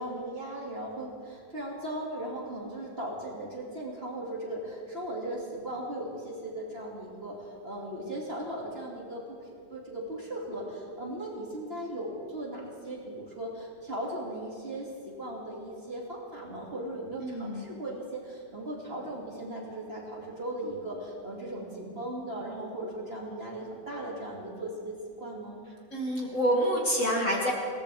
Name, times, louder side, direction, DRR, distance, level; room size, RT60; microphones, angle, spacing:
voice 1, 0.0-9.4 9.7-25.6, right 1 dB, 30° right, -4 dB, 2.5 m, -37 dB
voice 2, 17.2-17.7 25.9-27.5, equal, 40° left, -2 dB, 2.4 m, -27 dB
21.5 x 18.0 x 3.4 m, 2.3 s
omnidirectional pair, 2.2 m